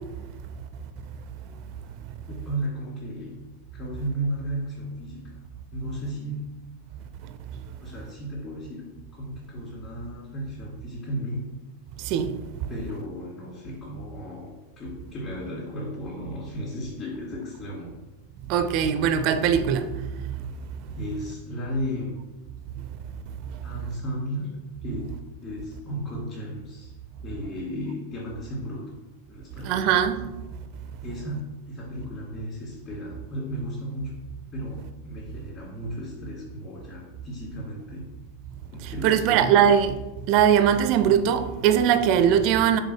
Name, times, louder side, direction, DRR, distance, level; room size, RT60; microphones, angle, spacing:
voice 1, 2.3-3.4 3.7-5.4 5.7-6.4 7.8-8.9 9.1-11.4 12.7-17.9 21.0-22.2 23.6-25.2 25.4-26.9 27.2-29.0 29.3-29.8 31.0-34.1 34.5-38.0 38.7-39.6, equal, 30° left, 2.3 m, -34 dB
voice 2, 18.5-19.9 29.6-30.2 38.8-40.0 40.3-42.8, right 8 dB, 40° right, 0.4 m, -20 dB
6.5 x 3.9 x 4.8 m
figure-of-eight pair, 90°, 0 cm